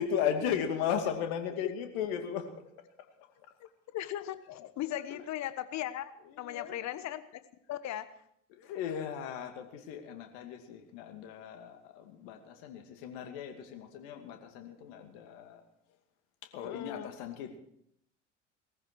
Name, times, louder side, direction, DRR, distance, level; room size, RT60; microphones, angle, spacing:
voice 1, 0.0-2.5 5.0-5.2 6.3-6.8 8.5-15.6 16.4-17.6, left 8 dB, 65° left, 5 dB, 2.6 m, -36 dB
voice 2, 3.9-6.1 6.4-7.2 7.7-8.1 16.6-17.1, left 12 dB, 50° left, 13 dB, 1.3 m, -37 dB
19.5 x 14.5 x 4.7 m, 0.73 s
figure-of-eight pair, 65°, 37 cm